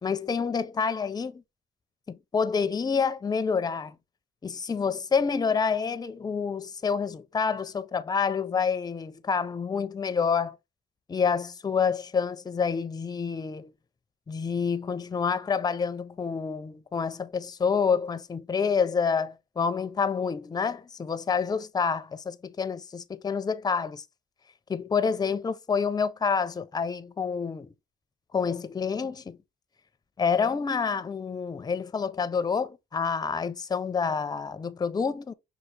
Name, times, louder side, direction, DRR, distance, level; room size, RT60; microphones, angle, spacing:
voice 1, 0.0-1.4 2.1-4.0 4.4-10.6 11.1-13.7 14.3-24.0 24.7-27.7 28.3-29.4 30.2-35.3, left 6 dB, 20° left, 0.5 m, -28 dB
5.6 x 2.3 x 3.2 m
cardioid pair, 90°, 20 cm